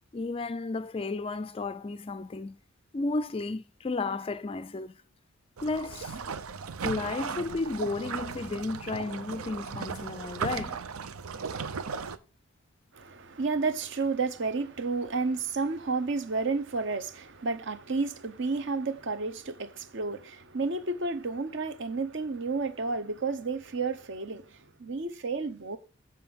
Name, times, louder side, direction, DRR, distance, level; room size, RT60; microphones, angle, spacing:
voice 1, 0.1-2.6 2.9-5.0 5.6-6.2 6.8-10.8, left 3 dB, 25° left, 0.3 m, -33 dB
sound 1, 5.6-12.2, right 5 dB, 90° right, 0.7 m, -36 dB
voice 2, 12.9-25.8, right 4 dB, 55° right, 0.8 m, -31 dB
7.6 x 4.7 x 7.0 m
head